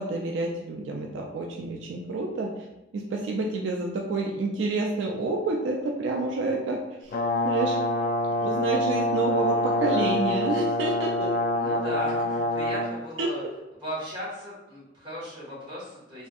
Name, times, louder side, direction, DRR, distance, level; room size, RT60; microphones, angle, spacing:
voice 1, 0.0-2.7 2.9-7.2 7.4-7.8 8.4-11.3 13.2-13.3, right 3 dB, 75° right, 0 dB, 0.3 m, -28 dB
Brass instrument, 7.1-12.9, left 1 dB, 45° left, 0.3 m, -26 dB
voice 2, 11.6-13.4 13.8-16.3, equal, 25° right, -7 dB, 1.3 m, -36 dB
3.3 x 2.6 x 2.3 m, 0.98 s
head